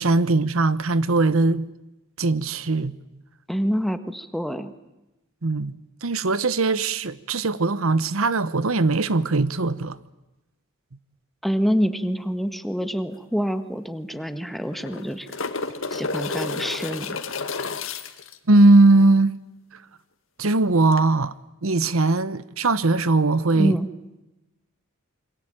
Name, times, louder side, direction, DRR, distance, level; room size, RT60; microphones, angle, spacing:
voice 1, 0.0-1.7 2.2-2.9 5.4-10.0 18.5-19.4 20.4-21.3 21.6-23.8, right 2 dB, 80° right, 1.0 m, -20 dB
voice 2, 3.5-4.7 11.4-15.3 15.9-17.2 23.5-23.9, equal, ahead, 1.6 m, -26 dB
sound 1, 13.1-13.2 13.5-13.6 14.6-18.4 20.9-21.0, left 4 dB, 70° left, 2.0 m, -31 dB
27.5 x 24.0 x 9.0 m
head